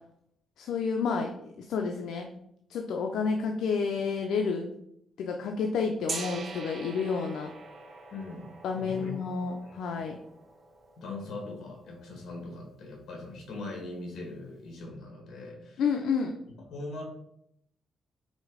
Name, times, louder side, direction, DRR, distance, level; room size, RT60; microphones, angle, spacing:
voice 1, 0.6-2.3 2.7-4.7 5.2-7.5 8.6-10.2 15.8-16.3, left 5 dB, 90° left, 3 dB, 0.6 m, -30 dB
Gong, 6.1-12.0, right 4 dB, 50° right, 1.3 m, -43 dB
voice 2, 8.1-8.5 8.7-9.1 9.6-9.8 11.0-15.8 16.7-17.0, left 2 dB, 70° left, -1 dB, 2.6 m, -41 dB
5.2 x 4.0 x 5.0 m, 0.75 s
cardioid pair, 120°, 0 cm